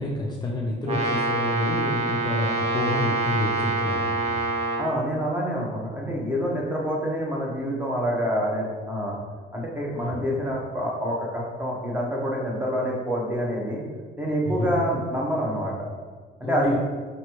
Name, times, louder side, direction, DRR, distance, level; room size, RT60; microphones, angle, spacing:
voice 1, 0.0-4.4 10.0-10.2 14.4-14.7 16.4-16.8, left 1 dB, 25° left, -3 dB, 0.5 m, -29 dB
Brass instrument, 0.8-4.9, right 2 dB, 40° right, 0.9 m, -26 dB
voice 2, 4.8-9.2 9.5-13.8 14.2-15.9 16.4-16.8, equal, 10° right, -3 dB, 1.0 m, -27 dB
5.2 x 3.1 x 2.9 m, 1.5 s
cardioid pair, 110°, 17 cm